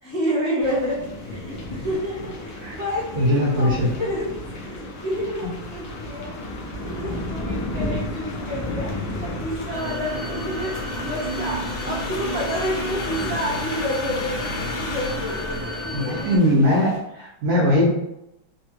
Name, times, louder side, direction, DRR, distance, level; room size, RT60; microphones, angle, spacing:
voice 1, 0.0-4.3 4.6-16.4 16.6-16.8, equal, 20° left, -10 dB, 0.5 m, -29 dB
sound 1, 0.6-16.2, left 3 dB, 90° left, 1.4 m, -35 dB
sound 2, 0.6-17.0, left 1 dB, 60° left, 0.6 m, -35 dB
voice 2, 3.2-3.9 15.9-16.9 17.2-17.9, left 1 dB, 70° right, -4 dB, 0.9 m, -20 dB
sound 3, 9.7-16.4, right 1 dB, 10° right, 0.9 m, -32 dB
3.4 x 2.2 x 3.0 m, 0.85 s
omnidirectional pair, 2.2 m